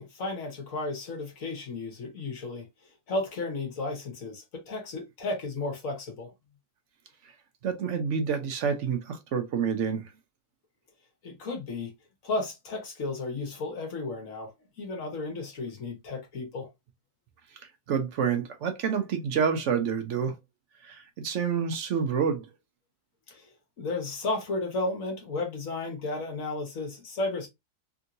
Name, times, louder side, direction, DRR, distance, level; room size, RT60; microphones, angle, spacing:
voice 1, 0.0-2.7 3.1-6.3 11.2-11.9 12.2-16.7 23.3-23.5 23.8-27.5, left 2 dB, 60° left, 1.6 m, -33 dB
voice 2, 7.6-10.0 17.9-20.3 20.8-22.5, right 6 dB, 60° right, 0.9 m, -28 dB
3.5 x 2.8 x 2.5 m
omnidirectional pair, 1.6 m